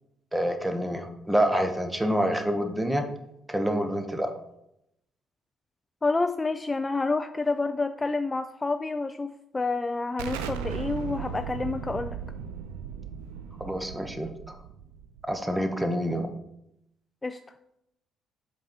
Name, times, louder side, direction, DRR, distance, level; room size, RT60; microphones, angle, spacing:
voice 1, 0.3-3.1 3.5-4.3 13.6-14.3 15.3-16.3, equal, 10° right, 7 dB, 1.0 m, -27 dB
voice 2, 6.0-12.2 17.2-17.4, left 3 dB, 25° left, 9 dB, 0.4 m, -28 dB
Explosion, 10.2-15.6, right 8 dB, 75° right, 0.4 m, -37 dB
7.5 x 4.0 x 4.4 m, 0.81 s
figure-of-eight pair, 45°, 0 cm